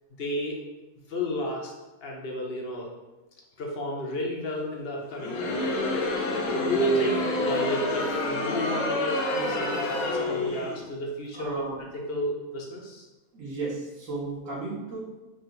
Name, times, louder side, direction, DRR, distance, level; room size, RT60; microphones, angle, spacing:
voice 1, 0.2-0.6 1.1-1.7 2.0-2.9 3.6-5.6 6.2-11.6 11.9-13.1, equal, 55° left, -1 dB, 0.7 m, -31 dB
Crowd, 5.1-10.8, left 2 dB, 80° left, 1.1 m, -28 dB
voice 2, 11.3-11.8 13.3-15.0, right 3 dB, 65° right, -6 dB, 1.6 m, -34 dB
3.8 x 2.3 x 3.9 m, 1.1 s
omnidirectional pair, 1.5 m